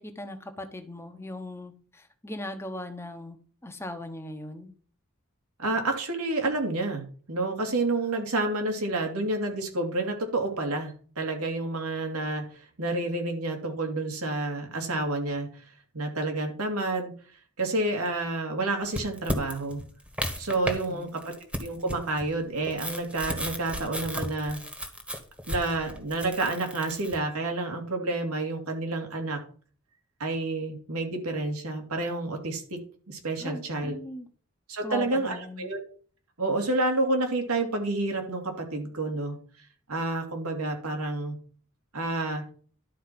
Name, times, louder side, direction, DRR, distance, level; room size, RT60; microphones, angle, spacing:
voice 1, 0.0-3.4 3.6-4.7 20.9-21.1 33.4-34.3 34.8-35.7, left 1 dB, 10° left, 6 dB, 1.1 m, -39 dB
voice 2, 5.6-12.4 12.8-15.6 15.9-17.1 17.6-19.8 20.4-21.2 21.6-24.6 25.5-29.4 30.2-32.8 33.1-34.0 34.7-35.8 36.4-39.4 39.9-41.4 41.9-42.4, right 2 dB, 80° right, 3 dB, 2.5 m, -29 dB
sound 1, 18.9-20.8 21.2-27.2, equal, 5° right, 1.4 m, -34 dB
11.5 x 4.5 x 6.0 m, 0.43 s
head